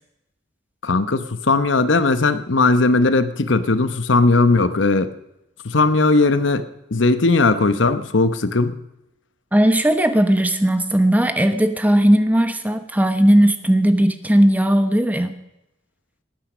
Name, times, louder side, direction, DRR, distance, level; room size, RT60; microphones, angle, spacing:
voice 1, 0.8-5.1 5.6-8.8, left 3 dB, 85° left, 12 dB, 0.9 m, -18 dB
voice 2, 9.5-15.3, right 1 dB, 10° right, 9 dB, 1.0 m, -17 dB
20.0 x 9.2 x 6.2 m, 0.88 s
head